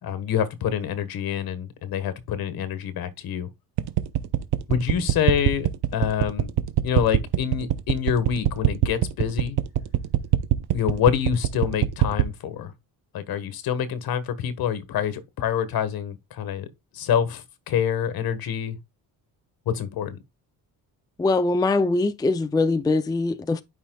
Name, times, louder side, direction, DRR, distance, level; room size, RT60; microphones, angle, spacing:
voice 1, 0.0-3.5 4.7-6.5 6.8-9.6 10.7-12.7 13.1-16.7 16.9-18.8 19.6-20.2, left 8 dB, 65° left, 1.5 m, -26 dB
sound 1, 3.8-12.3, right 14 dB, 80° right, 0.9 m, -21 dB
voice 2, 21.2-23.6, left 3 dB, 10° left, 0.4 m, -22 dB
11.5 x 5.7 x 2.3 m
cardioid pair, 145°, 38 cm